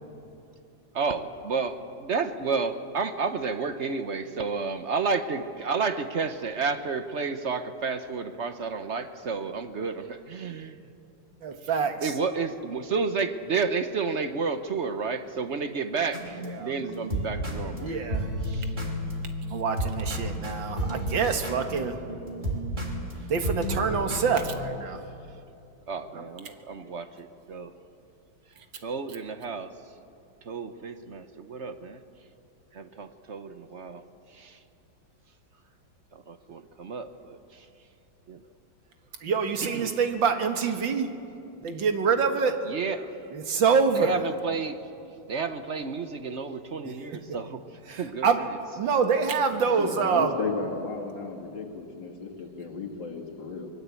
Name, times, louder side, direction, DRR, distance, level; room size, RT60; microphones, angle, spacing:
voice 1, 0.9-10.9 11.6-11.7 12.0-17.9 18.4-18.7 25.9-27.7 28.8-29.8 30.4-32.0 32.7-34.0 34.3-34.6 36.1-37.7 38.3-38.4 39.6-40.0 42.6-43.2 43.9-44.8 45.3-47.6 47.9-48.6, right 4 dB, 50° right, 9 dB, 0.9 m, -31 dB
voice 2, 11.4-12.1 16.6-16.7 17.8-18.3 19.5-22.0 23.3-25.0 39.2-41.1 41.6-42.6 43.3-44.1 47.9-48.4 48.8-50.3, right 5 dB, 75° right, 6 dB, 2.3 m, -26 dB
sound 1, 16.1-24.7, equal, 25° right, 3.6 m, -32 dB
voice 3, 49.5-53.7, left 4 dB, 70° left, 1 dB, 2.8 m, -34 dB
24.0 x 21.0 x 8.3 m, 2.7 s
omnidirectional pair, 2.1 m